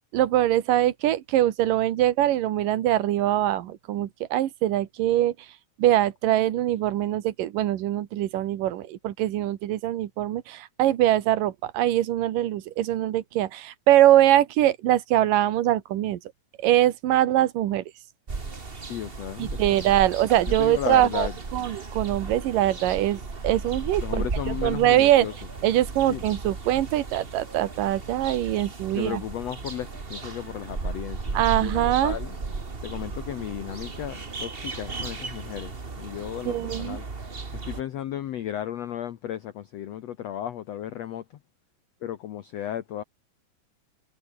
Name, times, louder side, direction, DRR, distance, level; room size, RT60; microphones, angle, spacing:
voice 1, 0.1-5.3 5.8-16.2 16.6-17.8 19.4-25.3 25.6-29.2 31.3-32.2 36.5-37.0, right 13 dB, 65° right, 2.9 m, -23 dB
sound 1, 18.3-37.8, right 4 dB, 35° right, 0.8 m, -35 dB
voice 2, 18.9-19.8 20.6-21.4 24.0-25.3 26.1-26.3 28.9-32.3 32.8-37.1 37.6-41.2 42.0-43.0, left 11 dB, 75° left, 1.5 m, -34 dB
omnidirectional pair, 4.4 m